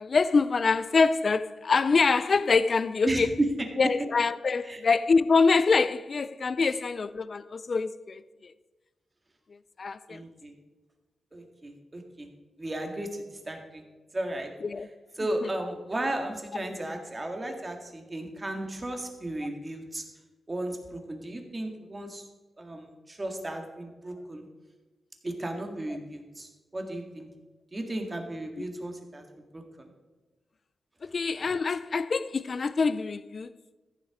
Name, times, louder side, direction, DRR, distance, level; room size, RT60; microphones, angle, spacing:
voice 1, 0.0-3.3 3.8-8.5 9.5-10.2 14.6-14.9 15.4-15.5 28.6-28.7 31.0-33.5, left 4 dB, 45° left, 0.4 m, -25 dB
voice 2, 10.1-10.5 11.3-12.3 12.6-13.8 14.1-14.5 15.2-20.0 20.5-22.3 22.6-24.4 25.2-27.3 27.7-29.2 29.5-29.9 31.0-31.1, right 1 dB, 25° right, 1.9 m, -35 dB
14.0 x 7.4 x 5.0 m
wide cardioid pair, 115°, 0 cm